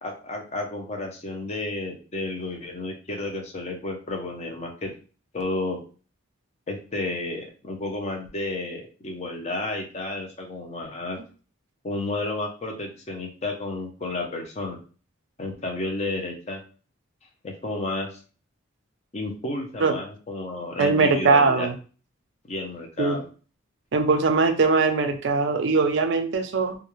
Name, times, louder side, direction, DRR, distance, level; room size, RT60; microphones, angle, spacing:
voice 1, 0.0-4.9 5.3-5.8 6.7-11.2 11.8-14.8 15.4-16.6 17.4-18.2 19.1-21.7 22.5-23.3, left 2 dB, 30° left, 2 dB, 0.5 m, -31 dB
voice 2, 20.8-21.7 23.0-23.2 23.9-26.8, right 4 dB, 55° right, 6 dB, 0.4 m, -21 dB
2.3 x 2.1 x 3.0 m, 0.37 s
head